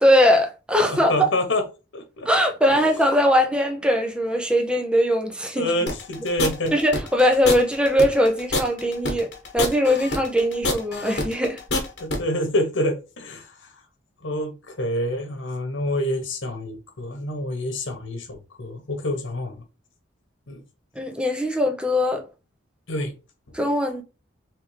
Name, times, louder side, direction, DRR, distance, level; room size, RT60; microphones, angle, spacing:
voice 1, 0.0-1.3 2.3-5.7 6.7-11.6 21.0-22.3 23.5-24.0, equal, 5° right, 0.5 m, -21 dB
voice 2, 0.8-1.6 1.9-2.3 5.6-6.7 12.0-13.5 14.2-19.5 20.5-20.6 22.9-23.1, left 1 dB, 90° left, 1.0 m, -27 dB
sound 1, 5.9-12.2, left 2 dB, 60° left, 1.2 m, -26 dB
3.4 x 3.2 x 3.2 m
head